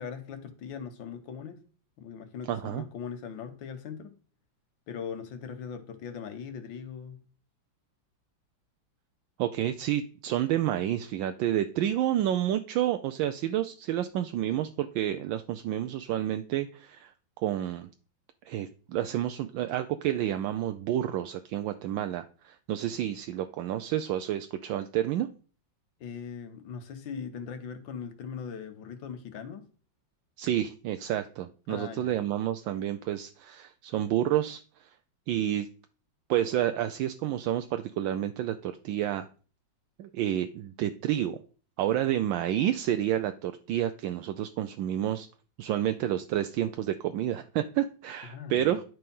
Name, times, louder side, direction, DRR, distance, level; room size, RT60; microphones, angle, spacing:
voice 1, 0.0-1.6 2.0-4.1 4.9-7.2 26.0-29.7 31.7-32.1 48.2-48.8, left 7 dB, 75° left, 1.8 m, -40 dB
voice 2, 2.5-2.8 9.4-17.1 17.4-17.9 18.5-25.3 30.4-34.6 35.3-35.7 36.3-39.3 40.0-41.4 41.8-45.3 45.6-48.8, right 12 dB, 80° right, 1.3 m, -29 dB
11.0 x 4.5 x 5.4 m
omnidirectional pair, 2.1 m